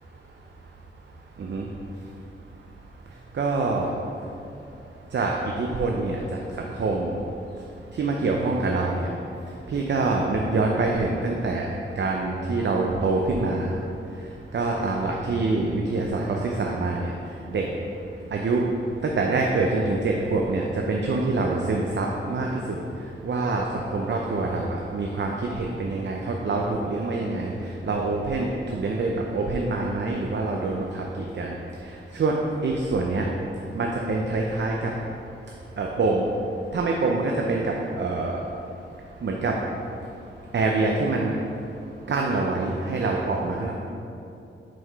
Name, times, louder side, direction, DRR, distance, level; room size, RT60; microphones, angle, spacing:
voice 1, 3.3-3.9 5.1-6.2 6.6-7.1 8.0-9.1 9.7-11.7 12.0-13.7 14.5-17.1 17.5-17.7 18.3-18.6 19.0-22.8 23.2-27.5 27.8-31.0 31.3-31.6 32.1-32.3 32.6-33.2 33.7-34.9 35.8-36.3 36.7-38.4 39.2-39.5 40.5-41.3 42.1-43.7, right 3 dB, 60° right, 0 dB, 0.6 m, -25 dB
5.9 x 5.0 x 4.7 m, 2.7 s
cardioid pair, 70°, 21 cm